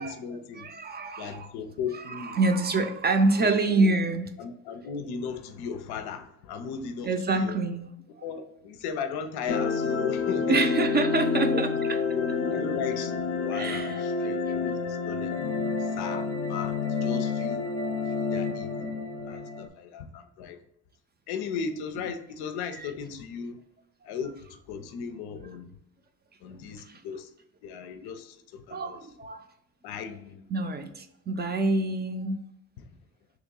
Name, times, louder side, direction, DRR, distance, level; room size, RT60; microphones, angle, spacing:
voice 1, 0.0-0.7 1.2-2.4 3.4-3.9 4.4-7.6 8.2-10.6 11.3-11.6 12.1-13.1 13.4-15.4 15.8-17.7 18.1-18.9 19.2-20.6 21.3-23.6 24.0-25.8 26.4-27.3 27.6-29.0 29.8-30.5 32.8-32.9, left 6 dB, 85° left, 8 dB, 0.5 m, -37 dB
voice 2, 0.6-1.5 1.9-4.3 7.0-7.9 10.5-12.0 13.5-14.0 14.5-14.6 22.8-22.9 26.9-27.0 28.7-29.4 30.5-32.4, right 3 dB, 25° right, 7 dB, 0.4 m, -26 dB
sound 1, 9.5-19.7, left 4 dB, 40° left, 0.4 m, -29 dB
3.1 x 3.0 x 3.6 m, 0.79 s
cardioid pair, 85°, 38 cm